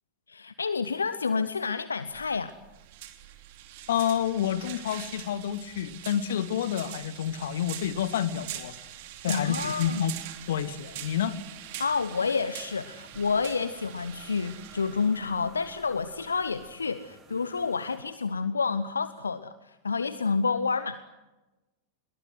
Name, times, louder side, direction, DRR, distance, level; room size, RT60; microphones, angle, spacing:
voice 1, 0.3-2.5 9.3-10.1 11.8-21.0, left 5 dB, 75° left, 0.9 m, -29 dB
sound 1, 2.1-16.7, right 12 dB, 50° right, 3.1 m, -43 dB
voice 2, 3.9-8.8 9.2-10.1 10.5-11.4, left 10 dB, 60° left, 1.5 m, -29 dB
sound 2, 9.8-18.0, right 4 dB, 20° right, 7.7 m, -55 dB
27.0 x 22.5 x 8.0 m
figure-of-eight pair, 90°, 0 cm